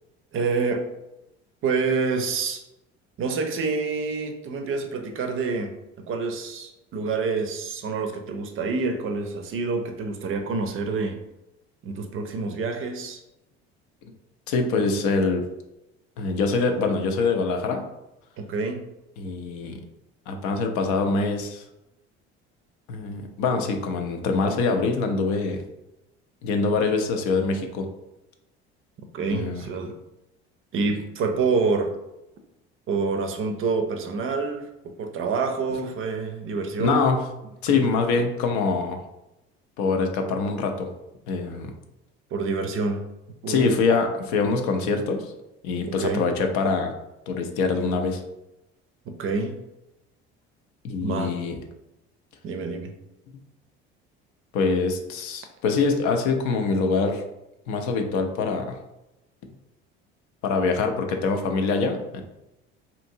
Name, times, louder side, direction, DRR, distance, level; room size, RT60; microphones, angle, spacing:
voice 1, 0.3-0.9 1.6-2.6 3.2-5.8 6.1-11.2 11.8-13.2 18.4-18.8 29.1-30.0 30.7-31.9 32.9-37.1 37.7-37.9 42.3-43.1 43.4-43.7 46.0-46.2 49.1-49.6 51.0-51.4 52.4-52.9, right 4 dB, 40° right, 5 dB, 0.5 m, -27 dB
voice 2, 14.5-15.4 16.2-17.8 19.2-19.8 20.3-21.6 22.9-25.6 26.4-27.9 29.3-29.6 36.8-37.2 37.6-39.0 39.8-40.9 41.3-41.7 43.5-45.3 45.6-46.9 47.3-48.2 50.8-51.6 54.5-57.2 57.7-58.8 60.4-62.2, left 4 dB, 60° left, 5 dB, 0.5 m, -24 dB
2.7 x 2.5 x 2.7 m, 0.92 s
hypercardioid pair, 60°, 32 cm